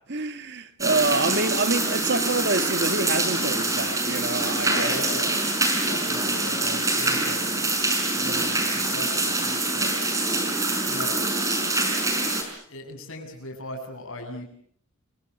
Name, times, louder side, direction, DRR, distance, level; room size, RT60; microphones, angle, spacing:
voice 1, 0.1-4.9, right 3 dB, 50° right, 1.8 m, -26 dB
sound 1, 0.8-12.4, right 2 dB, 15° right, 5.4 m, -25 dB
voice 2, 4.6-5.3 5.9-7.7 8.1-9.9 10.5-10.6 10.8-11.3 12.3-14.4, left 1 dB, 65° left, 7.8 m, -38 dB
28.5 x 25.0 x 7.0 m
head